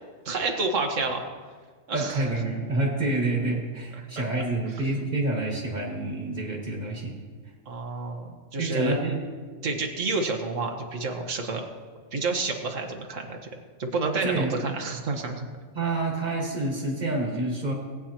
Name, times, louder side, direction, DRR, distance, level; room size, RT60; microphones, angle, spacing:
voice 1, 0.2-1.2 1.9-2.2 4.0-4.2 7.7-9.0 9.6-11.7 12.1-13.5 13.8-15.5, right 3 dB, 60° right, 3 dB, 1.5 m, -29 dB
voice 2, 1.9-7.2 8.6-9.2 14.2-14.6 15.7-17.7, right 2 dB, 35° right, -2 dB, 1.9 m, -28 dB
18.5 x 9.0 x 2.9 m, 1.5 s
omnidirectional pair, 1.5 m